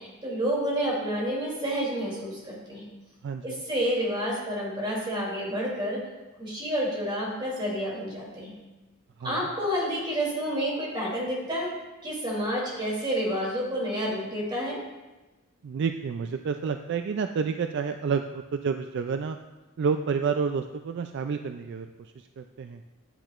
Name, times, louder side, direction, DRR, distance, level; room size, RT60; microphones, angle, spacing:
voice 1, 0.0-2.8 3.4-6.0 6.4-8.5 9.2-11.7 12.0-14.8, equal, 25° right, -5 dB, 2.9 m, -29 dB
voice 2, 3.2-3.6 9.2-9.5 15.6-18.2 18.5-19.4 19.8-22.8, right 5 dB, 55° right, 7 dB, 0.3 m, -29 dB
9.9 x 9.1 x 2.5 m, 1.1 s
head